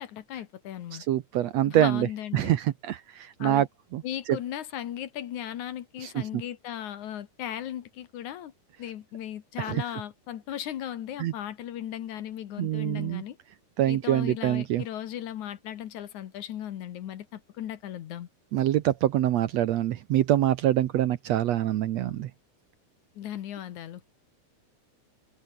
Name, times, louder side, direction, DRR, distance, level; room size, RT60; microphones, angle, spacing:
voice 1, 0.0-1.0 1.7-2.6 3.4-3.7 4.0-8.5 8.8-13.4 13.9-18.3 23.2-24.0, left 11 dB, 65° left, 2.4 m, -37 dB
voice 2, 1.1-2.1 2.3-3.7 3.9-4.0 4.3-4.4 6.0-6.1 9.6-9.8 11.2-11.3 12.6-13.2 13.8-14.8 18.5-22.3, right 12 dB, 80° right, 1.5 m, -25 dB
omnidirectional pair, 4.3 m